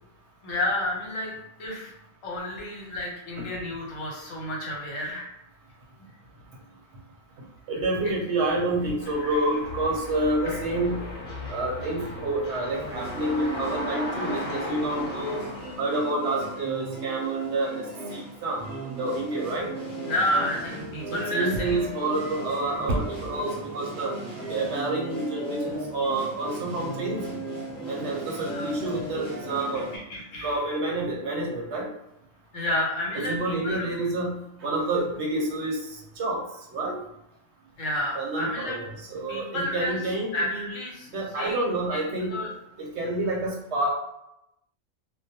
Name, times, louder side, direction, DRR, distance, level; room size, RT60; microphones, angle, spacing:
voice 1, 0.4-1.9 2.2-5.3 8.0-8.1 9.2-9.4 10.5-10.6 20.0-21.8 28.4-28.7 29.7-30.6 32.5-33.9 37.8-38.8 39.3-40.0 40.3-41.1 41.3-42.0 42.3-42.5, left 1 dB, 75° left, -3 dB, 1.1 m, -31 dB
voice 2, 7.7-11.1 11.5-15.4 15.8-17.8 18.1-19.7 21.1-24.1 24.5-27.4 27.9-29.8 30.4-31.9 33.1-36.4 36.7-37.0 38.1-40.7 41.1-42.4 42.8-43.9, right 2 dB, 65° right, -1 dB, 0.8 m, -28 dB
sound 1, 9.0-15.8, left 1 dB, 55° left, 0.9 m, -36 dB
sound 2, 12.7-30.0, right 2 dB, 5° left, 0.8 m, -36 dB
2.2 x 2.2 x 2.7 m, 0.83 s
omnidirectional pair, 1.4 m